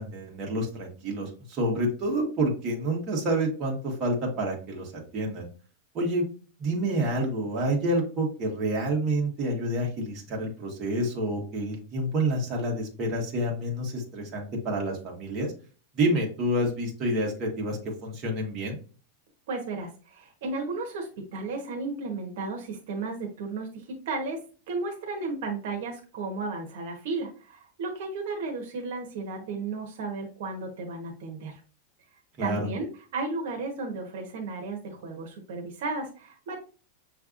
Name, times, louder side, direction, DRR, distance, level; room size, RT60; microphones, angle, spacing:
voice 1, 0.0-5.4 5.9-6.3 6.6-15.5 15.9-18.8 32.4-32.6, right 1 dB, 25° right, -2 dB, 1.5 m, -28 dB
voice 2, 19.5-24.4 24.7-31.6 32.4-32.9 33.1-36.6, right 3 dB, 60° right, 1 dB, 1.1 m, -34 dB
6.3 x 3.3 x 2.5 m, 0.37 s
supercardioid pair, 160°, 0 cm